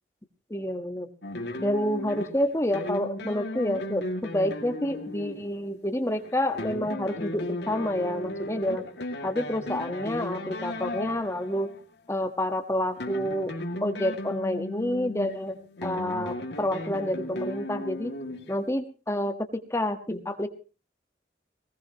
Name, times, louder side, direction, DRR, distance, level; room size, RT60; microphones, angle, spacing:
voice 1, 0.5-1.1 1.6-8.8 9.2-11.7 12.1-13.5 13.8-15.6 15.8-18.1 18.5-20.5, left 1 dB, 15° left, 6 dB, 1.3 m, -28 dB
sound 1, 1.2-11.8 12.8-18.7, left 1 dB, 70° left, 2.2 m, -36 dB
19.5 x 19.5 x 3.0 m, 0.34 s
head